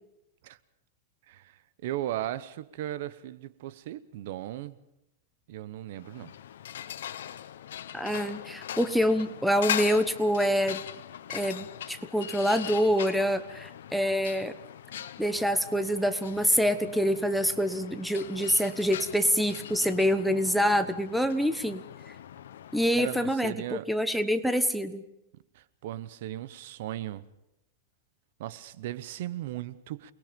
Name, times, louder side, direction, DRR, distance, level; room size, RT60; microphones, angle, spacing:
voice 1, 1.3-4.8 5.5-6.3 22.9-23.9 25.5-27.2 28.4-30.1, right 13 dB, 55° right, 1.0 m, -37 dB
sound 1, 6.0-23.4, left 10 dB, 85° left, 1.1 m, -40 dB
voice 2, 7.9-10.8 11.3-14.6 15.2-21.8 22.7-25.0, equal, ahead, 1.0 m, -26 dB
28.5 x 20.5 x 5.3 m
supercardioid pair, 160°, 0 cm